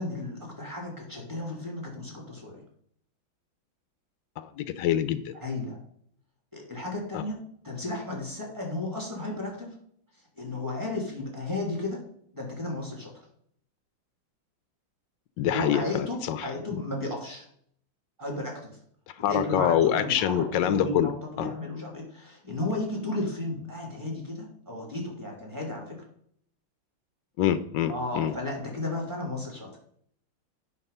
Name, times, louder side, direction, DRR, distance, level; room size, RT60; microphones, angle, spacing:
voice 1, 0.0-2.6 5.4-5.8 6.5-7.4 7.6-9.7 10.4-12.0 12.3-13.1 15.5-17.5 18.2-18.7 19.3-26.0 27.9-29.8, left 2 dB, 10° right, -1 dB, 2.6 m, -34 dB
voice 2, 4.4-5.2 7.1-7.2 15.4-16.8 19.2-21.1 21.4-21.5 27.4-28.3, left 10 dB, 70° left, 12 dB, 1.1 m, -26 dB
8.3 x 6.0 x 5.4 m, 0.66 s
omnidirectional pair, 2.3 m